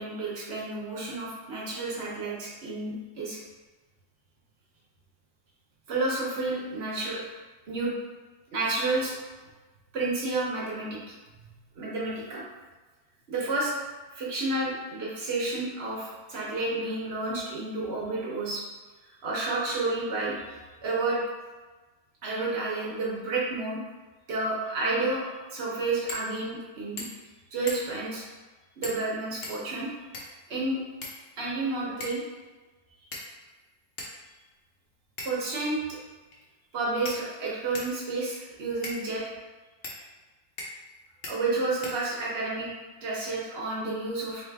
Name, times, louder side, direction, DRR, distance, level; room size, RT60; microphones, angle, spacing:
voice 1, 0.0-3.4 5.9-7.3 7.7-7.9 8.5-9.1 9.9-11.1 11.7-12.4 13.3-13.7 14.1-18.6 19.0-21.2 22.2-23.8 24.3-25.2 25.5-27.0 27.5-28.2 28.8-29.9 30.5-30.8 31.4-32.2 35.2-35.8 36.7-39.2 41.3-42.7 43.0-44.4, right 2 dB, 55° right, -5 dB, 0.7 m, -30 dB
sound 1, 26.1-26.3 26.6-26.7 27.0-27.3 27.7-28.1 28.8-29.1 29.4-30.4 31.0-31.6 32.0-32.3 33.1-33.5 34.0-34.1 35.2-35.5 36.3-36.4 37.0-38.0 38.8-39.0 39.8-40.0 40.6-40.9 41.2-41.4 41.8-42.4, left 2 dB, 65° left, 0.7 m, -39 dB
3.9 x 2.4 x 3.4 m, 1.3 s
omnidirectional pair, 2.0 m